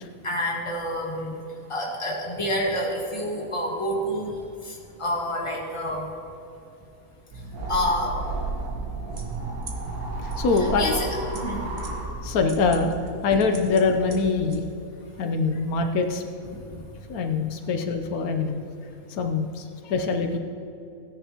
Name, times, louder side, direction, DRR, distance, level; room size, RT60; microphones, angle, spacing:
voice 1, 0.2-1.3 1.7-4.3 4.6-6.1 7.7-8.2 10.5-11.1 11.3-11.7 16.7-16.8, equal, 20° left, -2 dB, 1.7 m, -28 dB
sound 1, 7.3-12.7, right 2 dB, 85° right, 1.7 m, -32 dB
sound 2, 9.1-14.6, right 3 dB, 45° right, 1.4 m, -41 dB
voice 2, 10.2-11.0 12.2-12.9 13.2-14.6 15.2-16.2 17.1-18.6 19.2-20.4, left 4 dB, 85° left, 5 dB, 1.2 m, -24 dB
16.0 x 10.0 x 2.9 m, 2.7 s
omnidirectional pair, 1.5 m